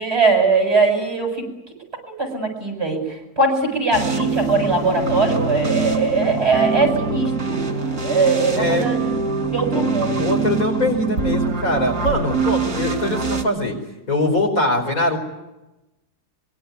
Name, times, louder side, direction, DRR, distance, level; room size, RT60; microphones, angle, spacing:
voice 1, 0.0-1.4 2.2-3.0 3.4-9.0 9.5-10.3, right 3 dB, 40° right, 3 dB, 7.8 m, -20 dB
sound 1, 3.9-13.4, right 4 dB, 65° right, 3.6 m, -24 dB
voice 2, 8.6-8.9 9.7-9.8 10.2-13.8 14.1-15.2, left 2 dB, 60° left, 3 dB, 5.2 m, -22 dB
25.0 x 23.0 x 9.6 m, 1.0 s
omnidirectional pair, 1.7 m